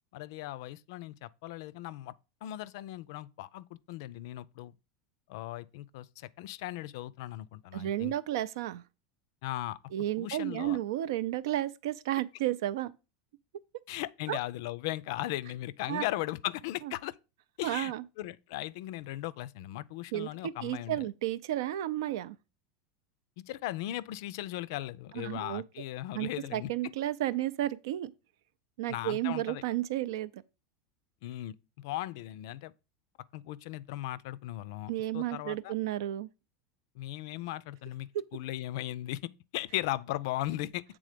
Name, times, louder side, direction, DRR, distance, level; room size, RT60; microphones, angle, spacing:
voice 1, 0.1-2.1 2.4-4.7 5.3-8.1 9.4-9.8 10.2-10.8 13.9-17.1 17.6-17.9 18.2-21.1 23.5-26.7 28.9-29.6 31.2-32.7 33.3-35.7 37.0-41.0, left 15 dB, 65° left, 0.4 m, -37 dB
voice 2, 7.7-8.8 9.9-12.9 14.3-14.4 15.9-16.0 16.8-16.9 17.6-18.0 20.1-22.4 25.1-25.6 26.1-28.1 28.8-30.4 34.9-36.3 38.1-38.3, right 13 dB, 80° right, 0.4 m, -32 dB
7.7 x 3.6 x 5.0 m
supercardioid pair, 150°, 2 cm